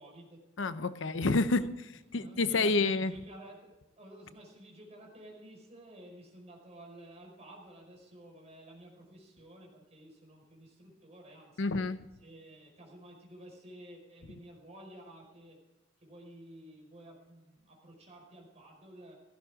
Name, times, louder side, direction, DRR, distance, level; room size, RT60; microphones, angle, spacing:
voice 1, 0.0-0.4 1.0-1.6 2.1-11.6 12.2-15.6 16.0-19.2, right 1 dB, 35° right, 0 dB, 5.0 m, -52 dB
voice 2, 0.6-3.1 11.6-12.0, left 3 dB, 85° left, 12 dB, 0.8 m, -29 dB
16.0 x 15.0 x 3.7 m, 1.0 s
head